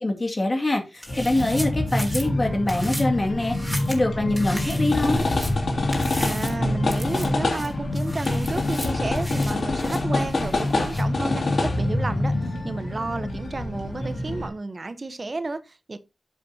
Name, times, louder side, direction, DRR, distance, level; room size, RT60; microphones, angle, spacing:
voice 1, 0.0-3.6 3.9-5.3, left 2 dB, 35° left, 2.2 m, -24 dB
sound 1, 0.9-2.3 2.7-3.0 3.4-4.0 4.4-5.5 5.9-6.6 6.9-7.3 7.5-11.0, equal, ahead, 3.7 m, -37 dB
sound 2, 1.1-14.5, left 2 dB, 70° left, 2.6 m, -25 dB
voice 2, 6.2-16.0, right 3 dB, 45° right, 1.0 m, -32 dB
11.5 x 7.4 x 2.8 m
wide cardioid pair, 65°, 0 cm